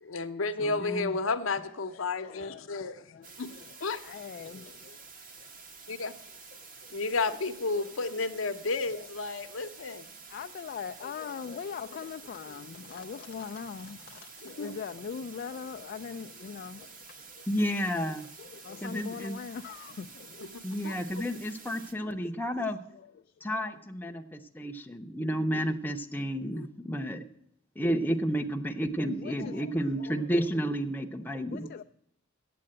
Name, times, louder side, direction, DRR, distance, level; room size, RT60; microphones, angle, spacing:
voice 1, 0.0-3.0 3.4-3.5 3.8-4.0 5.9-6.1 6.9-10.1 14.4-14.7 20.4-21.0 26.5-26.7, left 3 dB, 75° left, 0.8 m, -32 dB
voice 2, 0.6-1.1 17.5-18.3 18.8-19.4 20.6-22.8 23.4-27.2 27.8-31.7, equal, 10° left, 0.6 m, -31 dB
voice 3, 1.6-3.8 4.0-5.1 5.4-5.5 6.8-7.4 7.7-8.2 8.9-9.1 10.3-17.5 18.4-20.5 22.6-23.7 29.0-30.3 31.5-31.8, left 6 dB, 50° left, 0.3 m, -42 dB
sound 1, 3.2-21.9, right 4 dB, 45° right, 1.0 m, -49 dB
8.5 x 7.7 x 8.6 m
head